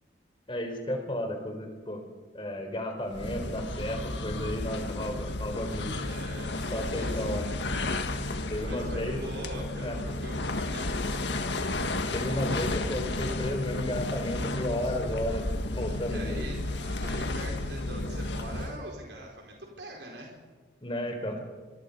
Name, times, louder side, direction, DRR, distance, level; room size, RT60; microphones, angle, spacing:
voice 1, 0.5-2.0 2.3-6.0 6.7-7.5 8.5-9.2 9.8-10.0 12.1-16.5 20.8-21.4, left 1 dB, 30° left, 5 dB, 4.0 m, -33 dB
sound 1, 3.1-18.9, left 2 dB, 80° left, 1.7 m, -32 dB
voice 2, 5.9-7.8 8.6-11.3 16.1-20.4, right 1 dB, 80° right, 0 dB, 4.6 m, -43 dB
24.5 x 24.5 x 5.5 m, 1.3 s
head